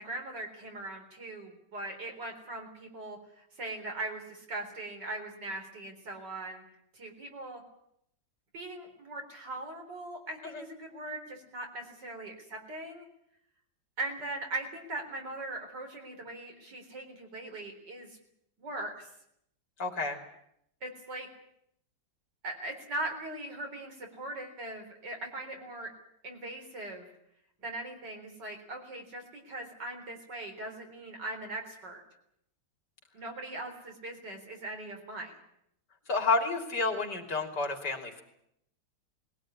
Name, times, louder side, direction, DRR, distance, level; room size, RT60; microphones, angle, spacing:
voice 1, 0.0-6.6 6.9-7.6 8.5-13.1 14.0-18.2 18.6-19.1 20.8-21.3 22.4-25.9 26.2-27.1 27.6-32.0 33.1-35.3, right 2 dB, 65° right, 3 dB, 4.6 m, -40 dB
voice 2, 19.8-20.2 36.1-38.2, left 4 dB, 65° left, 3 dB, 3.7 m, -30 dB
20.5 x 17.0 x 9.9 m, 0.75 s
omnidirectional pair, 2.0 m